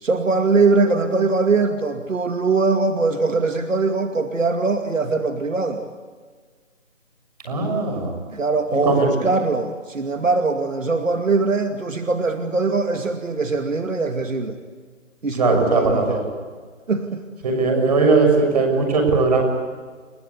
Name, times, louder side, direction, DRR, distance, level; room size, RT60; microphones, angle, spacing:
voice 1, 0.0-5.8 8.3-14.6 15.2-16.2 16.9-17.2, right 3 dB, 75° right, 6 dB, 2.5 m, -21 dB
voice 2, 7.4-8.1 8.8-9.1 15.4-16.2 17.4-19.5, right 4 dB, 30° right, 3 dB, 6.5 m, -18 dB
29.5 x 20.0 x 8.4 m, 1.5 s
hypercardioid pair, 170°, 39 cm